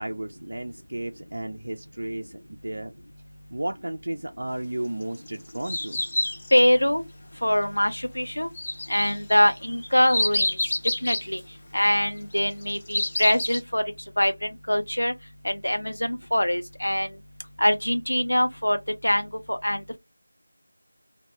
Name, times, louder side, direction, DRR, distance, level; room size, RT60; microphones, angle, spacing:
voice 1, 0.0-2.9 3.5-6.0, right 1 dB, 55° right, 0.3 m, -33 dB
sound 1, 5.0-6.6 8.5-11.3 12.4-13.6, left 1 dB, 30° left, 0.5 m, -28 dB
voice 2, 6.5-7.0 7.4-8.5 8.9-10.5 11.0-11.4 11.7-13.8 14.2-15.1 15.4-17.1 17.6-18.8 19.0-19.8, equal, 75° left, 0.6 m, -23 dB
2.3 x 2.1 x 2.9 m
figure-of-eight pair, 170°, 0 cm